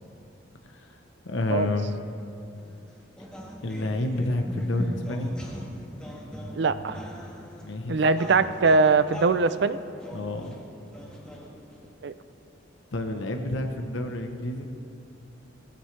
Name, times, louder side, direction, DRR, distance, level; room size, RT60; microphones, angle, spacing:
voice 1, 0.6-1.0 1.2-2.0 3.6-5.3 7.6-8.0 10.1-10.6 12.9-14.7, left 2 dB, 80° left, 5 dB, 0.9 m, -29 dB
sound 1, 2.6-11.9, equal, 5° left, 1.6 m, -40 dB
voice 2, 6.5-7.0 7.9-9.8 12.0-12.1, right 4 dB, 65° right, 13 dB, 0.5 m, -22 dB
18.0 x 15.0 x 3.3 m, 2.5 s
head